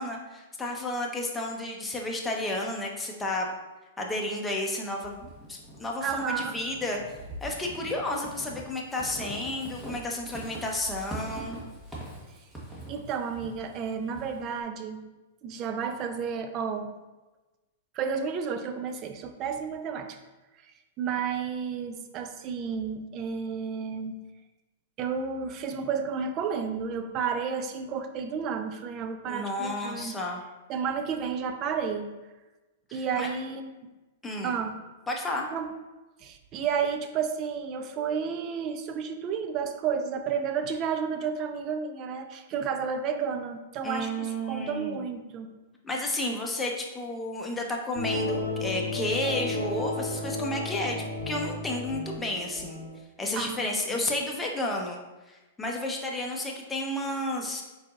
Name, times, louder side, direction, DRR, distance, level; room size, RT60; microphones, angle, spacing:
voice 1, 0.0-3.5 4.0-11.6 29.3-30.4 32.9-33.3 34.2-34.6 35.1-35.5 43.8-45.0 45.8-51.0 51.3-52.8 53.2-55.0 55.3-57.6, left 1 dB, 10° left, -1 dB, 0.8 m, -32 dB
Walk footsteps / Squeak, 5.0-14.6, right 1 dB, 5° right, 1.2 m, -43 dB
voice 2, 6.0-6.6 12.9-15.1 15.4-16.9 17.9-20.2 21.0-24.2 25.0-30.1 30.7-32.1 32.9-33.7 34.4-34.7 35.5-35.7 36.2-45.5 53.3-54.0, right 6 dB, 35° right, 7 dB, 0.5 m, -31 dB
sound 1, 47.9-53.0, left 2 dB, 85° left, 0.7 m, -33 dB
4.3 x 4.0 x 2.5 m, 1.1 s
hypercardioid pair, 110°, 0 cm